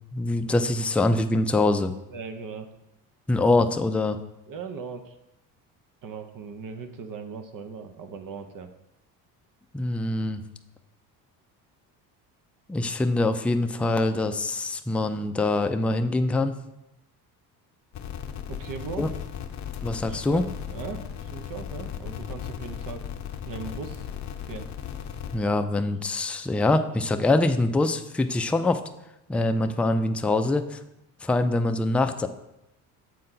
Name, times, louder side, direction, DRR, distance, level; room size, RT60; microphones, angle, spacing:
voice 1, 0.1-1.9 3.3-4.2 9.7-10.4 12.7-16.6 19.0-19.1 19.8-20.4 25.3-28.8 29.3-30.8 31.2-32.3, left 2 dB, 5° left, 7 dB, 0.3 m, -24 dB
voice 2, 2.1-2.7 4.5-5.2 6.0-8.7 18.5-19.1 20.1-23.1 23.4-24.1 24.5-24.7, right 5 dB, 45° right, 7 dB, 0.8 m, -38 dB
sound 1, 17.9-25.4, left 9 dB, 40° left, 0.7 m, -36 dB
7.6 x 4.3 x 3.9 m, 0.88 s
hypercardioid pair, 65°, 45 cm